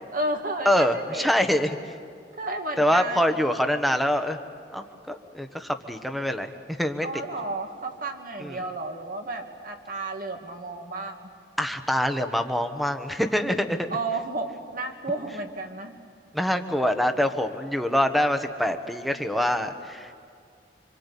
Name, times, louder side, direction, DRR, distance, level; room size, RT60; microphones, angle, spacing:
voice 1, 0.1-1.3 2.4-3.4 7.0-11.3 13.9-15.9, right 2 dB, 50° right, 4 dB, 2.2 m, -32 dB
voice 2, 0.6-1.9 2.8-4.4 4.7-6.5 6.8-7.1 8.4-8.6 11.6-13.8 16.3-20.1, equal, ahead, 6 dB, 1.2 m, -25 dB
26.0 x 26.0 x 8.4 m, 2.2 s
head